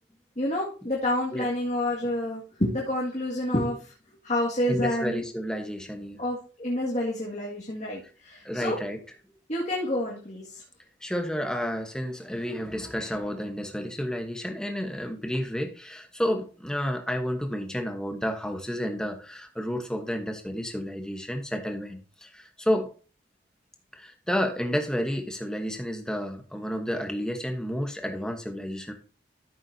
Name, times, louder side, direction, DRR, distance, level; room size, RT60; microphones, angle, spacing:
voice 1, 0.4-3.9 4.2-5.2 6.2-8.8 9.5-10.6, left 1 dB, 40° left, -4 dB, 2.0 m, -28 dB
voice 2, 4.7-6.2 8.4-9.0 11.0-22.9 23.9-28.9, equal, 5° left, 4 dB, 1.1 m, -31 dB
13.5 x 7.3 x 2.7 m, 0.37 s
head